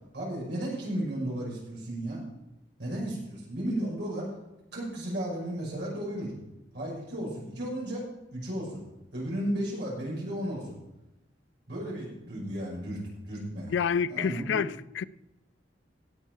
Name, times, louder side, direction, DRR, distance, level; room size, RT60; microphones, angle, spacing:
voice 1, 0.1-2.2 2.8-4.3 4.7-6.3 6.7-8.0 8.3-8.8 9.1-10.8 11.7-13.7 14.1-14.6, right 1 dB, 65° right, 5.7 m, -34 dB
voice 2, 13.7-15.0, left 6 dB, 70° left, 0.4 m, -28 dB
16.5 x 8.2 x 4.6 m
head